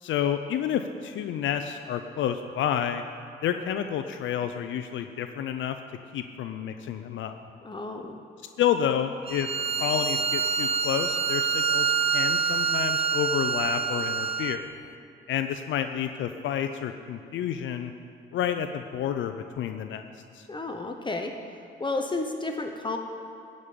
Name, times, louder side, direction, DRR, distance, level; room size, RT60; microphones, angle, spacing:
voice 1, 0.0-3.0 3.4-5.8 6.1-7.4 8.6-9.5 9.7-14.7 15.3-17.9 18.3-20.1 20.3-20.5, left 9 dB, 75° left, 7 dB, 0.6 m, -29 dB
voice 2, 7.6-8.2 20.5-21.3 21.8-23.0, left 3 dB, 25° left, 4 dB, 1.0 m, -31 dB
Bowed string instrument, 9.3-14.6, right 6 dB, 30° right, 0.6 m, -26 dB
15.0 x 5.3 x 8.8 m, 2.7 s
cardioid pair, 90°, 20 cm